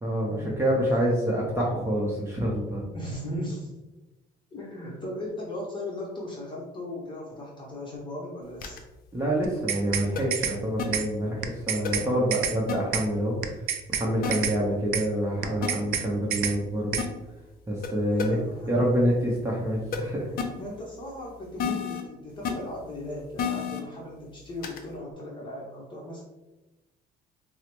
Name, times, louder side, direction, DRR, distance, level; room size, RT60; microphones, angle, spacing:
voice 1, 0.0-2.8 9.1-13.4 13.9-17.0 17.7-18.4 18.7-20.3, equal, 15° right, -4 dB, 0.7 m, -27 dB
voice 2, 2.9-3.7 4.5-8.8 18.1-18.9 20.6-26.2, left 1 dB, 30° left, -3 dB, 0.8 m, -37 dB
sound 1, 8.6-8.8 10.2-10.3 10.8-10.9 11.8-11.9 12.7-12.8 14.2-14.3 15.6-15.7 17.0-17.1 17.8-17.9 18.2-18.3 19.9-20.0 20.4-20.5 21.6-22.0 22.4-22.5 23.4-23.8 24.6-24.8, left 7 dB, 60° left, 0.6 m, -29 dB
sound 2, 9.4-10.1 10.3-10.6 10.9-11.1 11.4-12.1 12.3-12.6 12.9-13.1 13.4-14.1 14.3-14.6 14.9-15.1 15.4-16.1 16.3-16.6 16.9-17.1, right 8 dB, 65° right, 0.4 m, -28 dB
4.6 x 2.0 x 3.0 m, 1.0 s
cardioid pair, 110°, 17 cm